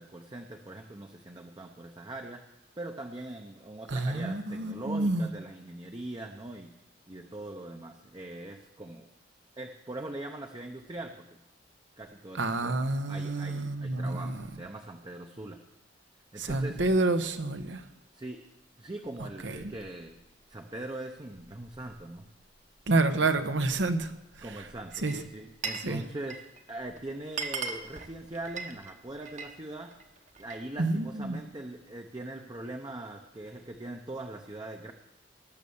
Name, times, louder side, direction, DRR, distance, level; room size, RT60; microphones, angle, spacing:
voice 1, 0.0-2.4 2.8-6.8 7.1-9.1 9.6-11.4 12.0-12.8 13.1-15.6 16.3-16.8 18.1-18.4 18.8-20.2 20.5-22.2 23.4-23.5 24.4-26.4 26.7-30.0 30.4-34.9, right 2 dB, 25° right, 3 dB, 0.8 m, -41 dB
voice 2, 3.9-5.3 12.4-14.4 16.4-17.8 19.4-19.6 22.9-24.1 25.0-25.2 25.8-26.0 30.8-31.4, right 2 dB, 75° right, 8 dB, 1.0 m, -28 dB
Glass, 24.9-25.9 26.2-26.6 27.0-27.1 27.3-29.6 29.9-30.7, right 4 dB, 45° right, 1.2 m, -37 dB
19.0 x 6.8 x 7.0 m, 0.89 s
head